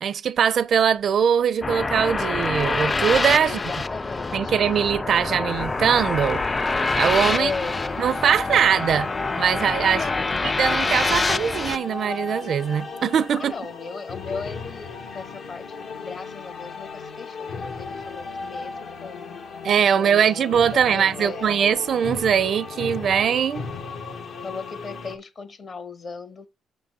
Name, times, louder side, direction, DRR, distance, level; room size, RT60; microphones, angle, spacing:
voice 1, 0.0-3.6 4.3-6.4 7.0-7.5 8.0-9.1 9.4-10.0 10.6-13.5 19.6-23.6, right 8 dB, 60° right, 0.5 m, -21 dB
sound 1, 1.6-11.8, left 3 dB, 25° left, 0.3 m, -26 dB
voice 2, 3.4-4.7 7.3-8.1 9.9-10.4 13.4-19.4 20.0-21.6 24.4-26.5, left 4 dB, 45° left, 1.3 m, -36 dB
sound 2, 5.5-13.4, left 2 dB, 85° left, 1.5 m, -47 dB
sound 3, 7.6-25.2, left 4 dB, 70° left, 1.4 m, -36 dB
6.5 x 3.9 x 5.9 m
cardioid pair, 90°, 0 cm